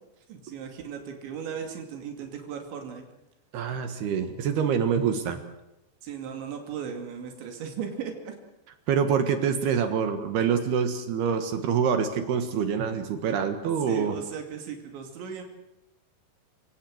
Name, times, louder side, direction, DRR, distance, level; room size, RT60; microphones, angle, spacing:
voice 1, 0.3-3.0 6.0-8.4 13.9-15.4, right 7 dB, 85° right, 4 dB, 5.0 m, -37 dB
voice 2, 3.5-5.4 8.9-14.1, right 7 dB, 70° right, 8 dB, 3.4 m, -26 dB
28.5 x 18.0 x 7.9 m, 0.94 s
omnidirectional pair, 5.1 m